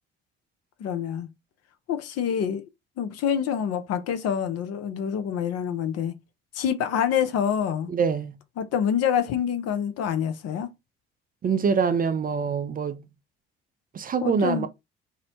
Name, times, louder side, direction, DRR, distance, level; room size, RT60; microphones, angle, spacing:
voice 1, 0.8-1.3 1.9-2.6 3.0-6.1 6.5-7.9 8.6-10.7 14.2-14.7, left 8 dB, 55° left, 0.6 m, -26 dB
voice 2, 7.9-8.3 11.4-13.0 13.9-14.7, right 6 dB, 30° right, 0.4 m, -24 dB
2.7 x 2.1 x 2.7 m
hypercardioid pair, 55°, 30 cm